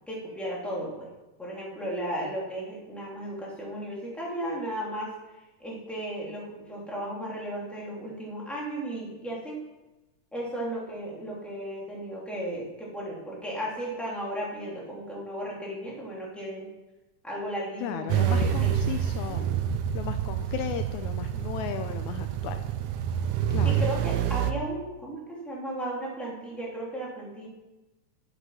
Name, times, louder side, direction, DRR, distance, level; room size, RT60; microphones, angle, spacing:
voice 1, 0.1-1.1 1.4-5.1 5.6-9.6 10.3-16.7 17.2-18.8 19.1-19.4 23.6-27.5, right 1 dB, ahead, -5 dB, 2.7 m, -35 dB
voice 2, 17.8-19.5 19.9-22.6 23.5-23.9, left 10 dB, 80° left, 8 dB, 1.9 m, -35 dB
sound 1, 18.1-24.5, right 9 dB, 75° right, 2.0 m, -27 dB
11.5 x 8.4 x 5.6 m, 1.1 s
omnidirectional pair, 3.6 m